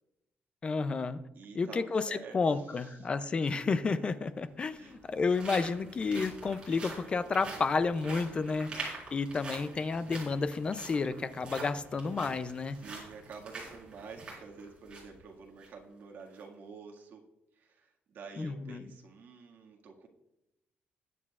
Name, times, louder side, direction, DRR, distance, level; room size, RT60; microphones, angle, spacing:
voice 1, 0.6-1.2 1.5-12.8 18.4-18.8, left 4 dB, 25° left, 13 dB, 0.4 m, -31 dB
voice 2, 1.3-3.1 4.8-5.0 12.8-17.2 17.5-20.1, right 5 dB, 55° right, 0 dB, 1.8 m, -49 dB
sound 1, 3.6-3.7 4.6-15.2 15.6-15.7 16.2-16.4, right 3 dB, 25° right, 4.1 m, -45 dB
20.5 x 8.5 x 2.4 m, 0.89 s
cardioid pair, 160°, 4 cm